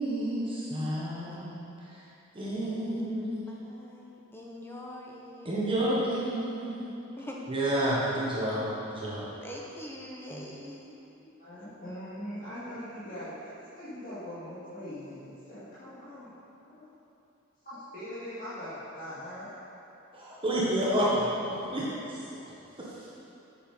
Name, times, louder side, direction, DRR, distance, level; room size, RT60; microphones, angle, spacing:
voice 1, 0.0-1.6 2.3-3.4 5.4-6.9 7.5-9.3 20.1-22.2 23.0-23.1, right 1 dB, 25° right, -7 dB, 1.3 m, -30 dB
voice 2, 1.2-1.7 2.6-5.7 7.2-7.5 8.4-8.5 9.4-11.0, equal, 10° left, -2 dB, 0.9 m, -44 dB
voice 3, 11.4-13.4 13.7-16.3 16.7-16.8 17.6-19.5, equal, 40° left, -15 dB, 2.2 m, -41 dB
7.5 x 7.0 x 5.4 m, 2.8 s
head